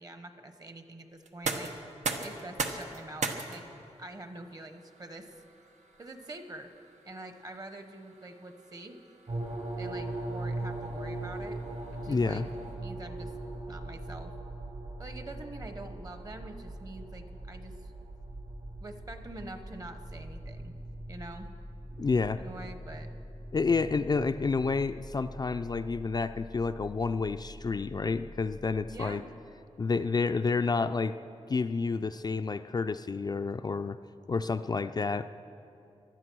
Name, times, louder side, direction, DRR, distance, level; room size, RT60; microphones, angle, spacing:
voice 1, 0.0-1.7 2.2-3.6 4.0-5.3 6.0-6.7 7.0-9.0 9.8-11.6 11.9-12.4 12.8-13.3 13.7-14.3 15.0-17.9 18.8-20.8 21.1-21.5 22.4-23.1 28.8-29.3, right 2 dB, 35° right, 8 dB, 1.0 m, -45 dB
sound 1, 1.2-13.0, right 3 dB, 90° right, 1.1 m, -41 dB
sound 2, 9.3-29.0, right 1 dB, 70° right, 3.7 m, -41 dB
voice 2, 12.1-12.5 22.0-22.4 23.5-29.2 29.8-31.1 31.5-34.0 34.3-35.3, left 4 dB, 35° left, 8 dB, 0.4 m, -29 dB
19.0 x 12.0 x 6.1 m, 2.7 s
wide cardioid pair, 150°, 12 cm